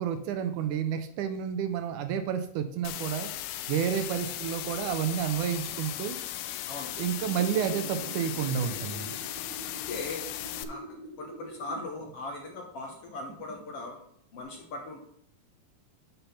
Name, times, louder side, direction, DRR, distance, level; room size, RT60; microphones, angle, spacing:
voice 1, 0.0-3.3 3.7-6.2 7.0-9.2, right 8 dB, 75° right, 9 dB, 2.0 m, -30 dB
sound 1, 2.8-10.6, left 13 dB, 85° left, 2.1 m, -37 dB
sound 2, 6.6-12.2 12.6-13.8 14.3-14.4, right 1 dB, 55° right, 2.2 m, -45 dB
voice 2, 9.9-10.2 10.6-10.8 11.2-14.0 14.3-15.0, left 2 dB, 60° left, 1 dB, 1.7 m, -39 dB
6.9 x 6.0 x 5.6 m, 0.68 s
omnidirectional pair, 3.7 m